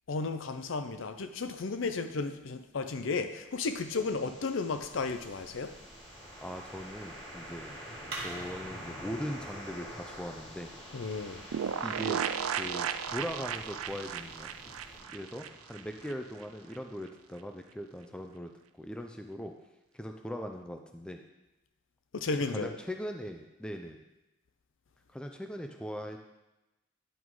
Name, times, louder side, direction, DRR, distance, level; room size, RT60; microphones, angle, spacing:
voice 1, 0.1-5.7 10.9-11.4 22.1-22.7, left 4 dB, 65° left, 9 dB, 0.5 m, -33 dB
sound 1, 3.6-17.5, equal, 20° left, 1.4 m, -48 dB
sound 2, 4.7-15.0, right 2 dB, 50° right, 1.5 m, -50 dB
voice 2, 6.4-7.7 8.2-10.7 11.8-12.2 12.5-14.5 15.1-19.5 19.9-21.2 22.5-24.0 25.1-26.2, equal, 5° left, 4 dB, 0.4 m, -40 dB
sound 3, 11.5-16.1 16.4-16.5 16.7-16.8, right 8 dB, 90° right, 0.4 m, -35 dB
10.0 x 3.8 x 4.7 m, 0.99 s
head